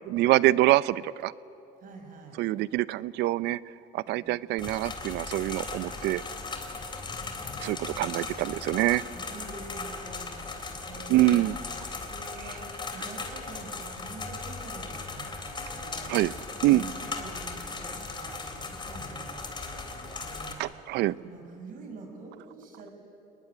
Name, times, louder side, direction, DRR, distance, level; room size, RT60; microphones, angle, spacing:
voice 1, 0.1-1.3 2.4-3.6 3.9-6.2 7.6-9.0 11.1-11.6 16.1-16.3 16.6-16.8 20.6-21.1, right 16 dB, 70° right, 18 dB, 0.6 m, -25 dB
voice 2, 1.8-2.4 4.1-4.3 7.7-10.5 10.9-16.2 16.7-20.6 21.0-22.9, right 3 dB, 50° right, 3 dB, 6.4 m, -46 dB
sound 1, 4.6-20.5, left 3 dB, 25° left, 3.5 m, -38 dB
28.5 x 20.0 x 9.9 m, 2.9 s
cardioid pair, 105°, 18 cm